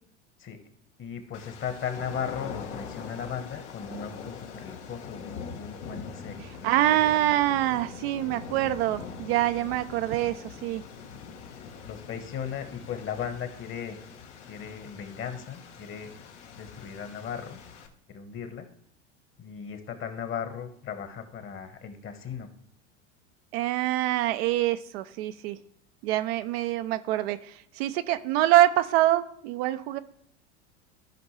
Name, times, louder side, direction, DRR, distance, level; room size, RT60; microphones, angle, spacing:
voice 1, 1.0-7.1 11.8-14.0 14.5-16.1 16.5-17.6 18.1-18.7 19.4-22.5, left 7 dB, 35° left, 8 dB, 1.4 m, -37 dB
sound 1, 1.3-17.9, left 6 dB, 70° left, 1.4 m, -43 dB
voice 2, 6.6-10.8 23.5-25.6 26.0-30.0, right 14 dB, 55° right, 10 dB, 0.6 m, -25 dB
15.0 x 5.2 x 3.3 m, 0.68 s
hypercardioid pair, 85°, 37 cm